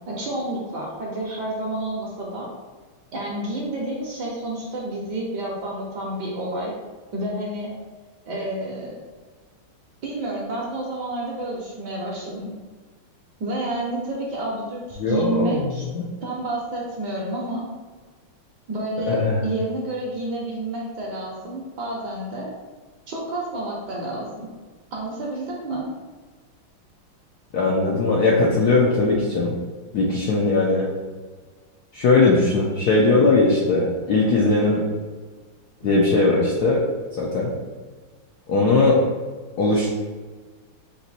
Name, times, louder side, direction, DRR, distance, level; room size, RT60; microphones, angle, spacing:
voice 1, 0.1-2.5 3.1-6.7 7.1-7.7 8.2-9.0 10.0-12.5 13.4-15.8 16.2-17.7 18.7-22.5 23.1-24.5 24.9-25.9 35.8-35.9, right 1 dB, 65° right, -2 dB, 1.2 m, -29 dB
voice 2, 15.0-15.6 15.9-16.1 19.1-19.4 27.5-29.5 29.9-30.8 31.9-34.8 35.8-36.8 37.2-37.5 38.5-39.0 39.6-39.9, left 3 dB, 75° left, -4 dB, 0.9 m, -19 dB
4.1 x 2.6 x 4.0 m, 1.4 s
omnidirectional pair, 2.3 m